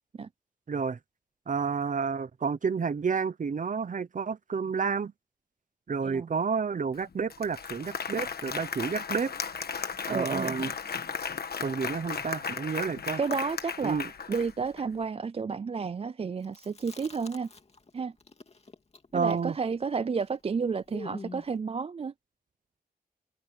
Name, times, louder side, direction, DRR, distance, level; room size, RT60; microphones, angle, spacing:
voice 1, 0.7-1.0 1.5-5.1 5.9-9.3 10.1-10.7 11.6-13.2 13.8-14.1 19.1-19.6, right 5 dB, 55° right, 0.8 m, -30 dB
Applause, 6.9-7.0 7.3-14.8, left 6 dB, 80° left, 1.3 m, -35 dB
voice 2, 10.1-10.6 13.2-14.0 14.3-17.5 17.9-18.1 19.1-22.1, right 5 dB, 40° right, 0.4 m, -31 dB
Chewing mastication, 16.4-17.9 18.2-21.6, left 3 dB, 40° left, 2.4 m, -47 dB
open air
wide cardioid pair, 140°, 16 cm